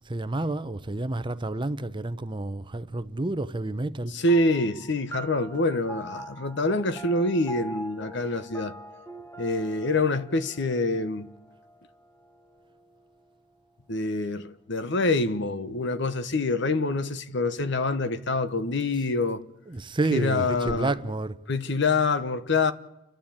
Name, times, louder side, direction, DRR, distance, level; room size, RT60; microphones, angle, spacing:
voice 1, 0.1-4.1 19.7-21.4, right 2 dB, 25° right, 0.7 m, -29 dB
voice 2, 4.1-8.7 9.4-11.3 13.9-19.4 20.1-20.9 21.5-22.7, left 2 dB, 65° left, 1.1 m, -26 dB
sound 1, 4.3-13.1, right 2 dB, 15° left, 1.5 m, -44 dB
29.5 x 12.0 x 8.7 m
head